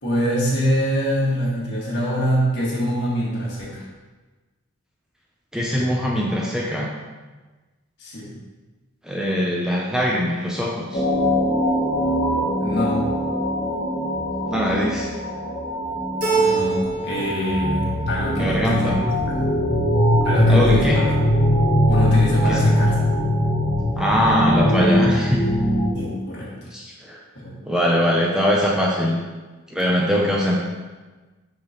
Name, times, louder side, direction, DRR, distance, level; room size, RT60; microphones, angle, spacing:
voice 1, 0.0-3.8 8.0-8.3 12.6-13.1 16.3-18.9 19.3-19.4 20.2-21.1 21.9-22.9 25.9-26.5 27.4-27.6, equal, 55° left, -6 dB, 1.8 m, -24 dB
voice 2, 5.5-6.9 9.0-11.0 14.5-15.1 18.4-19.0 20.5-21.0 22.5-22.6 24.0-25.5 26.7-27.2 27.6-29.2 29.7-30.5, equal, 5° right, -3 dB, 0.5 m, -22 dB
sound 1, 10.9-25.9, equal, 35° left, 1.1 m, -21 dB
Keyboard (musical), 16.2-17.3 17.6-18.4, right 4 dB, 40° right, 1.2 m, -24 dB
5.8 x 5.7 x 2.9 m, 1.3 s
head